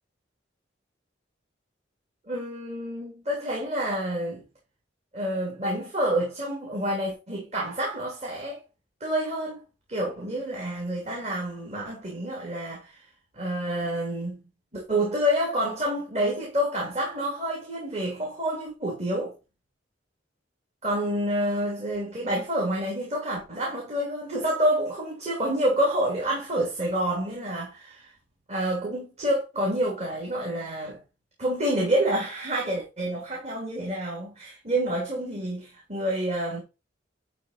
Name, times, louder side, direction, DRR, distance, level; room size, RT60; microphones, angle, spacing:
voice 1, 2.3-4.4 5.1-8.6 9.0-9.6 9.9-13.0 13.3-14.4 14.7-19.3 20.8-28.1 28.5-31.0 31.4-36.6, right 1 dB, 40° right, 2.8 m, -28 dB
11.0 x 3.8 x 4.3 m
head